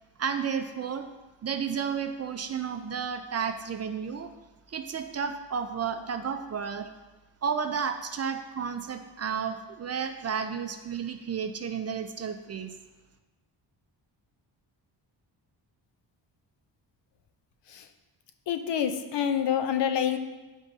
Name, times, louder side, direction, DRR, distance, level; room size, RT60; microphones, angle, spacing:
voice 1, 0.2-1.1 1.4-4.3 4.7-6.9 7.4-12.7, right 7 dB, 35° right, 7 dB, 0.4 m, -32 dB
voice 2, 18.5-20.2, left 8 dB, 65° left, 8 dB, 0.7 m, -27 dB
10.5 x 3.6 x 2.7 m, 1.1 s
cardioid pair, 95°, 45 cm